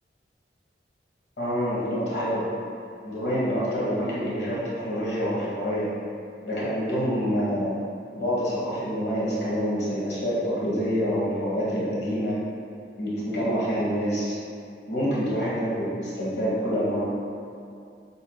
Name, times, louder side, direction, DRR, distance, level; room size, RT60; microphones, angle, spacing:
voice 1, 1.4-2.5 3.0-5.9 6.4-7.7 8.1-12.4 13.0-14.4 14.9-17.0, equal, 70° left, -7 dB, 1.3 m, -27 dB
6.6 x 2.7 x 2.2 m, 2.4 s
head